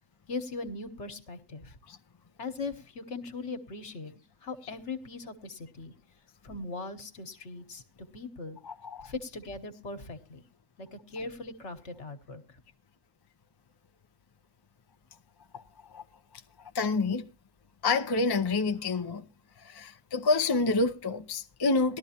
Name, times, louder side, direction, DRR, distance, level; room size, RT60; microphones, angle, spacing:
voice 1, 0.3-1.7 2.4-4.1 4.4-5.9 6.4-7.8 8.1-8.6 9.0-10.4 10.8-12.4, left 3 dB, 60° left, 1.5 m, -39 dB
voice 2, 8.6-9.1 15.5-15.6 15.9-16.0 16.6-17.2 17.8-19.3 19.6-22.0, left 3 dB, 30° left, 0.5 m, -28 dB
18.5 x 12.5 x 2.8 m
omnidirectional pair, 1.3 m